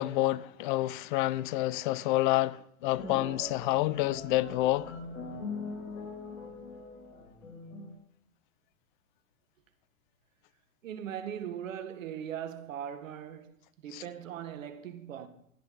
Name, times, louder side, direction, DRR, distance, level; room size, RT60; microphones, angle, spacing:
voice 1, 0.0-5.0 13.9-14.0, left 17 dB, 35° left, 0.5 m, -28 dB
sound 1, 2.8-7.9, left 3 dB, 75° left, 5.0 m, -42 dB
voice 2, 10.8-13.6 13.8-15.3, right 9 dB, 65° right, 1.8 m, -39 dB
25.0 x 9.6 x 4.2 m
hypercardioid pair, 110°, 42 cm